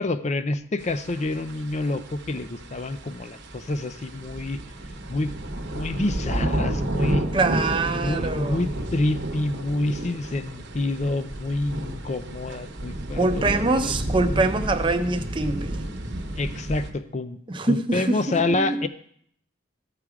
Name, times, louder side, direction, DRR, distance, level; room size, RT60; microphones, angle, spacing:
voice 1, 0.0-4.6 5.1-5.3 5.7-7.3 8.0-13.9 16.4-18.9, left 2 dB, 35° left, 12 dB, 0.5 m, -28 dB
sound 1, 0.8-16.9, right 1 dB, 55° right, 0.9 m, -31 dB
voice 2, 7.3-8.6 13.2-15.8 17.5-18.8, right 2 dB, 25° right, 7 dB, 0.6 m, -24 dB
14.0 x 4.9 x 4.9 m, 0.67 s
head